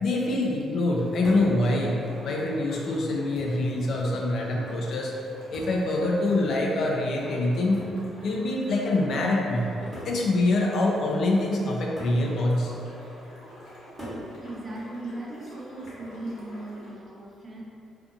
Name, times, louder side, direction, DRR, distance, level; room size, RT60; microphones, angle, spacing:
voice 1, 0.0-7.9 8.2-9.7 10.0-12.7, left 2 dB, 65° left, -1 dB, 0.4 m, -25 dB
sound 1, 0.9-16.9, equal, 85° left, 0.8 m, -46 dB
sound 2, 1.2-1.6 2.6-2.7 3.4-3.7 5.5-5.9 7.7-8.0 9.1-9.2 9.9-10.2 12.0-12.3 14.0-14.3 15.8-16.2, right 1 dB, 15° right, 1.0 m, -41 dB
voice 2, 14.4-17.6, right 1 dB, 30° right, -3 dB, 0.5 m, -38 dB
2.5 x 2.4 x 2.6 m, 2.5 s
cardioid pair, 90°, 0 cm